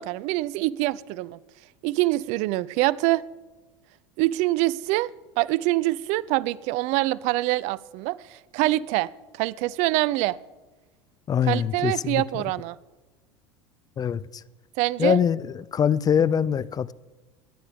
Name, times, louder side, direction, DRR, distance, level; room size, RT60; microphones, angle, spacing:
voice 1, 0.0-1.4 1.8-3.2 4.2-5.1 5.4-10.4 11.5-12.8 14.8-15.2, right 18 dB, 50° right, 0.4 m, -25 dB
voice 2, 11.3-12.4 14.0-14.4 15.0-16.9, left 8 dB, 25° left, 0.4 m, -24 dB
22.5 x 10.0 x 3.5 m
hypercardioid pair, 75°, 15 cm